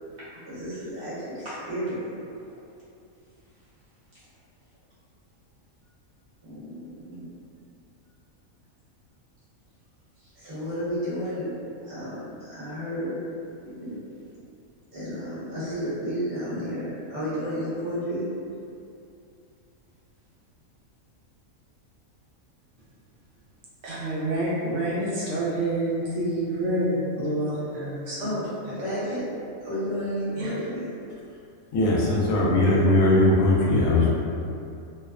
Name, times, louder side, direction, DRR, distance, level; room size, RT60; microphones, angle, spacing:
voice 1, 0.2-2.1 6.4-7.3 10.2-11.5 11.8-13.1 13.6-14.0 14.9-18.2 28.2-29.3 29.6-30.8, equal, 25° right, -13 dB, 0.9 m, -32 dB
voice 2, 23.8-28.2 30.4-30.5, right 1 dB, 65° right, -8 dB, 0.8 m, -27 dB
voice 3, 31.7-34.1, left 1 dB, 75° left, -5 dB, 0.9 m, -20 dB
2.6 x 2.0 x 2.3 m, 2.5 s
omnidirectional pair, 1.4 m